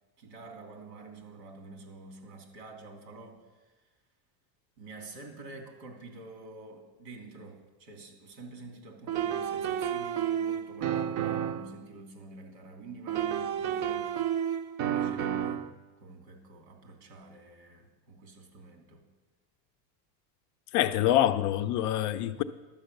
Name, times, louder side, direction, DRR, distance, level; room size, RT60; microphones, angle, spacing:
voice 1, 0.2-3.4 4.8-14.1 14.8-15.6 16.0-19.0, right 3 dB, 90° right, 3.0 m, -47 dB
sound 1, 9.1-11.7 13.1-15.7, right 9 dB, 40° right, 0.6 m, -31 dB
voice 2, 20.7-22.4, left 12 dB, 40° left, 0.4 m, -25 dB
11.5 x 8.0 x 6.5 m
supercardioid pair, 130°, 48 cm